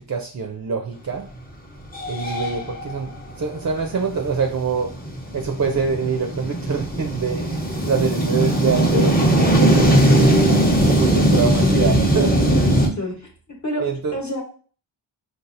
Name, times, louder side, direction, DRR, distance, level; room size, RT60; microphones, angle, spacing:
voice 1, 0.1-1.3 2.1-3.1 3.4-4.9 5.3-10.4 10.9-12.6 13.8-14.2, right 5 dB, 40° right, 4 dB, 0.4 m, -25 dB
sound 1, 1.3-1.4 1.8-12.9, right 1 dB, 20° left, 0.7 m, -19 dB
voice 2, 12.5-13.3 13.6-13.9 14.1-14.4, equal, 35° left, 0 dB, 1.0 m, -28 dB
4.0 x 2.4 x 2.5 m, 0.42 s
wide cardioid pair, 55°, 47 cm